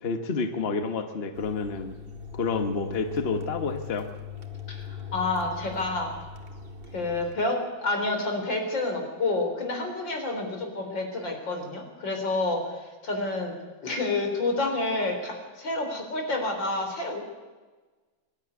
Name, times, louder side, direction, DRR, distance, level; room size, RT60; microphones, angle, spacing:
voice 1, 0.0-1.9 2.3-4.1, left 4 dB, 35° left, 7 dB, 1.5 m, -29 dB
sound 1, 1.3-7.3, left 6 dB, 30° right, 2.0 m, -40 dB
voice 2, 4.7-6.1 6.9-13.5 13.8-17.2, left 2 dB, 70° left, 3 dB, 4.5 m, -29 dB
24.0 x 12.5 x 9.6 m, 1.3 s
omnidirectional pair, 2.1 m